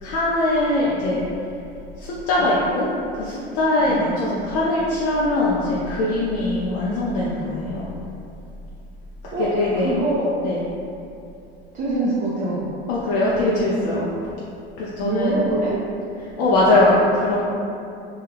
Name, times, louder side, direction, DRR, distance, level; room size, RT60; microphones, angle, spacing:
voice 1, 0.0-1.2 2.0-2.9 3.1-7.9 9.4-10.0 10.4-10.6 12.9-14.1 14.8-15.4 16.2-17.4, left 1 dB, 55° left, -6 dB, 0.5 m, -21 dB
voice 2, 3.8-4.5 9.3-9.5 9.8-10.3 11.7-12.7 15.0-15.8 16.7-16.8, right 2 dB, 25° right, -6 dB, 0.4 m, -25 dB
2.2 x 2.2 x 3.2 m, 2.6 s
hypercardioid pair, 85°, 31 cm